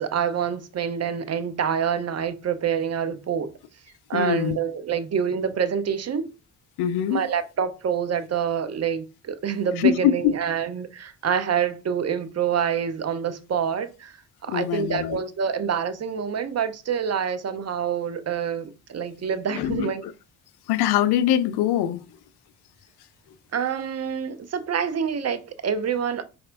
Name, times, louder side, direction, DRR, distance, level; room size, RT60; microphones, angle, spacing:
voice 1, 0.0-3.5 4.1-6.3 7.1-14.1 14.4-20.0 23.5-26.2, right 7 dB, 35° right, 0.7 m, -26 dB
voice 2, 4.1-4.6 6.8-7.2 9.8-10.3 14.5-15.2 19.5-20.1 20.7-22.0, left 10 dB, 55° left, 0.6 m, -23 dB
4.3 x 4.2 x 2.5 m
figure-of-eight pair, 45°, 47 cm